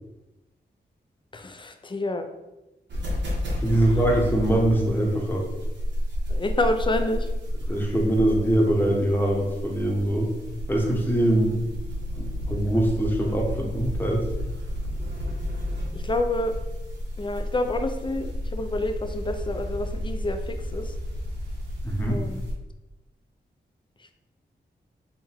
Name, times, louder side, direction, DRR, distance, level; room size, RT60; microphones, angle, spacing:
voice 1, 1.3-2.3 6.3-7.3 15.9-16.5 17.2-20.9 22.1-22.4, left 2 dB, 25° left, 7 dB, 0.5 m, -28 dB
sound 1, 2.9-22.5, equal, 80° right, 1.0 m, -31 dB
voice 2, 3.6-5.4 7.7-10.3 10.7-11.6 12.2-14.3 21.8-22.2, right 1 dB, 10° left, -1 dB, 1.0 m, -23 dB
3.8 x 2.2 x 4.4 m, 1.0 s
cardioid pair, 60°, 18 cm